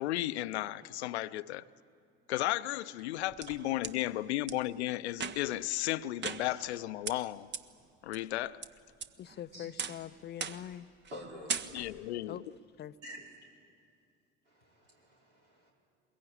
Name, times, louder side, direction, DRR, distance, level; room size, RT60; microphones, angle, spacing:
voice 1, 0.0-1.6 2.3-7.5 8.0-8.7 11.7-12.4, left 15 dB, 70° left, 0.7 m, -34 dB
sound 1, 3.0-3.9 4.5-4.6 5.1-5.6 6.2-6.8 7.1-7.2 7.5-7.6 8.1-8.7 9.0-9.4 9.8-10.1 10.4-10.7 11.0-11.2 11.5-12.1, right 6 dB, 30° right, 1.1 m, -38 dB
voice 2, 9.2-10.9 12.3-12.4 12.8-13.0, left 11 dB, 30° left, 0.6 m, -43 dB
voice 3, 11.1-11.6 13.0-13.3 14.5-15.7, equal, 80° right, 5.4 m, -48 dB
22.5 x 21.5 x 9.0 m
figure-of-eight pair, 65°, 35 cm